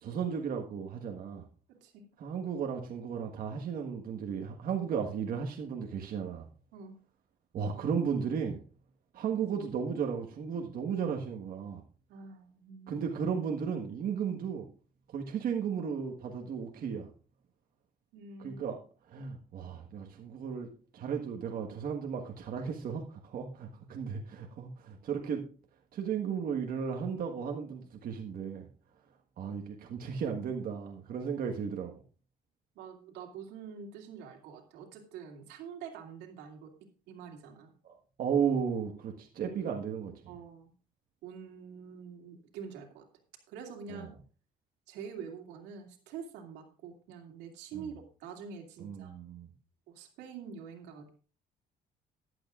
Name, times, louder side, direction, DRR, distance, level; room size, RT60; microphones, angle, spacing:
voice 1, 0.0-1.4 2.2-6.5 7.5-8.6 9.1-11.8 12.9-14.7 15.1-17.1 18.4-18.8 19.1-25.4 25.9-28.6 29.4-31.9 37.8-40.1 43.9-44.0 47.7-47.9 48.8-49.5, right 7 dB, 60° right, 2 dB, 1.5 m, -34 dB
voice 2, 12.1-13.0 18.1-18.6 32.7-36.7 37.1-37.7 40.3-40.7 41.2-43.1 43.5-44.1 44.9-49.1 49.9-51.2, right 6 dB, 90° right, 3 dB, 2.6 m, -46 dB
14.5 x 11.5 x 2.5 m, 0.38 s
cardioid pair, 110°, 17 cm